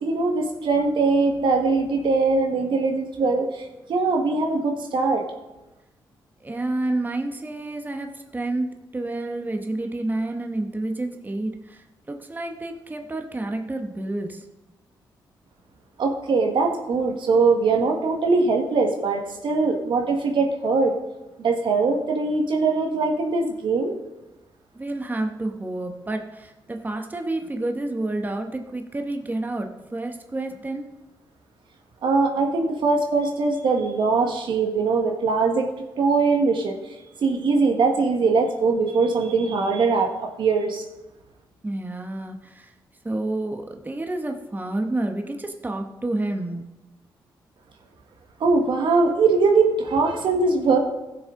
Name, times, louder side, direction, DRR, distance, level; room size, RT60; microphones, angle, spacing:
voice 1, 0.0-3.5 3.9-5.2 16.0-21.0 21.4-23.9 32.0-35.7 36.0-36.8 37.2-40.8 48.4-50.8, right 4 dB, 70° right, 3 dB, 1.5 m, -21 dB
voice 2, 6.4-8.7 8.9-14.4 24.7-30.9 41.6-42.7 43.0-46.6, right 2 dB, 20° right, 4 dB, 1.1 m, -29 dB
15.0 x 6.6 x 3.8 m, 1.0 s
cardioid pair, 70°, 9 cm